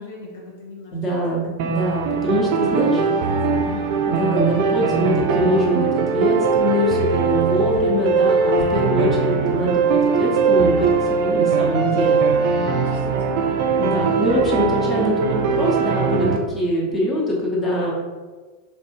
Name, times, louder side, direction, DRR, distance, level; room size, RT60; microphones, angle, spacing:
voice 1, 0.0-0.9 2.3-2.7 3.5-3.9 12.6-13.6, left 4 dB, 60° left, -2 dB, 0.5 m, -36 dB
voice 2, 0.9-3.0 4.0-12.8 13.7-17.9, equal, 20° left, -4 dB, 0.9 m, -23 dB
sound 1, 1.6-16.4, right 5 dB, 50° right, 0.3 m, -20 dB
3.2 x 2.6 x 3.0 m, 1.4 s
figure-of-eight pair, 90°, 0 cm